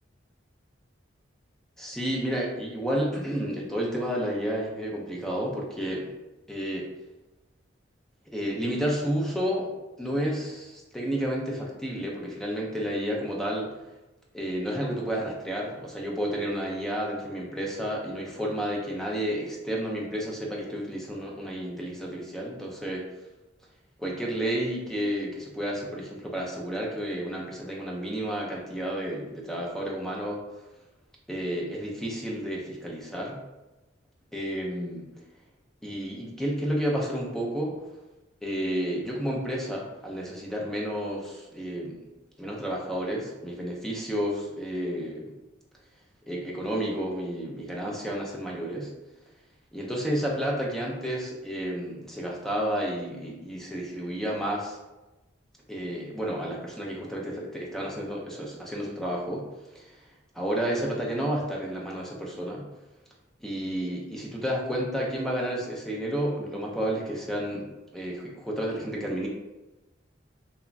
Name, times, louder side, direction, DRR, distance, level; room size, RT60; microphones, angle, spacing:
voice 1, 1.8-6.1 6.5-6.9 8.3-9.7 10.0-13.7 14.3-23.0 24.0-30.4 31.3-33.4 34.3-35.0 35.8-37.8 38.4-42.1 42.4-45.3 46.3-48.9 49.7-54.8 55.7-59.5 59.7-60.0 60.3-62.7 63.4-69.3, equal, ahead, -3 dB, 0.4 m, -31 dB
2.9 x 2.2 x 2.4 m, 1.1 s
head